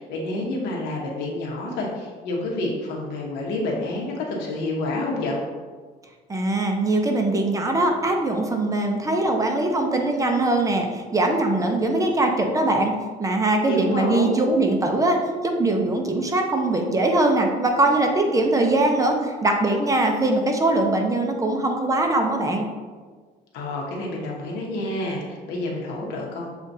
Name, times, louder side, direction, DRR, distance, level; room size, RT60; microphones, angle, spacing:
voice 1, 0.0-5.4 13.6-14.4 23.5-26.5, left 2 dB, 90° left, -2 dB, 1.1 m, -28 dB
voice 2, 6.3-12.9 13.2-15.2 15.4-22.6, right 2 dB, 20° right, 3 dB, 0.5 m, -21 dB
7.1 x 2.4 x 2.7 m, 1.5 s
cardioid pair, 110°, 17 cm